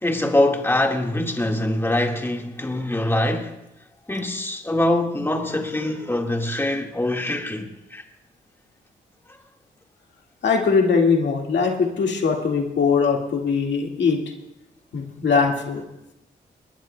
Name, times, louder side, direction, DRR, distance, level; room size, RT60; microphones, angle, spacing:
voice 1, 0.0-3.6 4.1-8.0, left 1 dB, 10° left, 1.7 m, -23 dB
voice 2, 10.4-14.2 14.9-15.8, left 5 dB, 75° left, 1.9 m, -21 dB
20.0 x 20.0 x 2.2 m
cardioid pair, 60°, 18 cm